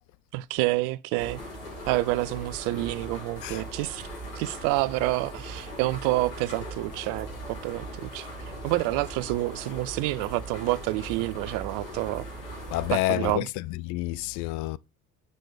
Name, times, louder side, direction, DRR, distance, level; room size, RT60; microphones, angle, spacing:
voice 1, 0.3-1.4 1.9-4.1 4.4-8.3 8.6-12.3 12.9-13.5, right 19 dB, 50° right, 0.5 m, -28 dB
sound 1, 1.2-12.9, right 1 dB, 70° left, 2.9 m, -39 dB
voice 2, 12.7-14.8, left 18 dB, 45° left, 0.4 m, -29 dB
7.5 x 5.2 x 3.3 m
figure-of-eight pair, 55°, 43 cm